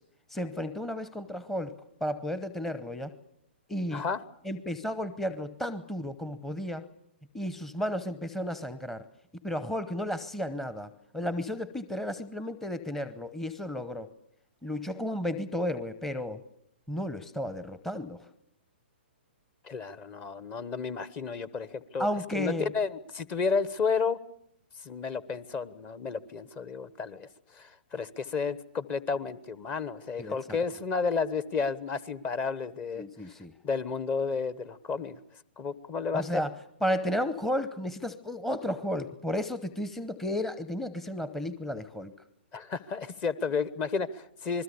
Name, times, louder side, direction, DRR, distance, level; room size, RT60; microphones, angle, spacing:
voice 1, 0.3-1.8 2.0-3.1 3.7-4.0 4.4-6.9 7.3-9.0 9.4-10.9 11.1-14.1 14.6-16.4 16.9-18.2 22.0-22.7 30.2-30.6 33.0-33.5 36.1-36.5 36.8-42.1, equal, 5° left, 12 dB, 0.9 m, -33 dB
voice 2, 3.9-4.2 19.6-24.2 24.8-33.0 33.6-35.2 35.6-36.4 42.5-44.6, left 5 dB, 25° left, 17 dB, 1.1 m, -32 dB
27.5 x 21.0 x 7.0 m, 0.74 s
figure-of-eight pair, 125°, 6 cm